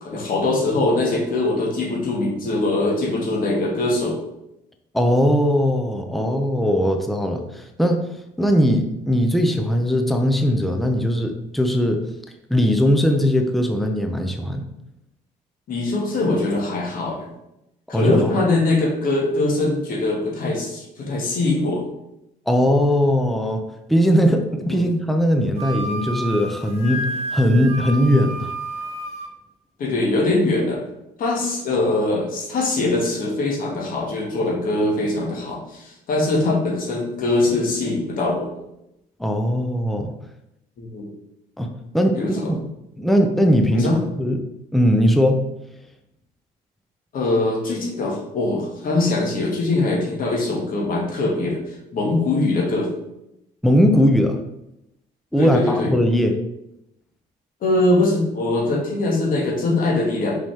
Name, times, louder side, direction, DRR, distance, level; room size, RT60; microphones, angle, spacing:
voice 1, 0.0-4.2 15.7-17.3 17.9-21.8 24.7-24.8 29.8-30.8 31.2-38.5 40.8-41.1 42.1-42.5 43.7-44.0 47.1-51.6 51.9-52.9 55.4-55.9 57.6-60.4, left 2 dB, 55° left, -1 dB, 2.1 m, -22 dB
voice 2, 4.9-8.0 8.4-12.0 12.5-14.7 17.9-18.3 22.5-23.6 23.9-28.5 39.2-40.1 41.6-42.6 43.0-43.9 44.2-44.4 44.7-45.5 53.6-54.4 55.3-56.4, equal, ahead, 4 dB, 0.7 m, -19 dB
Wind instrument woodwind instrument, 25.6-29.3, right 1 dB, 35° right, 1.9 m, -30 dB
6.0 x 5.7 x 3.6 m, 0.84 s
cardioid pair, 110°, 17 cm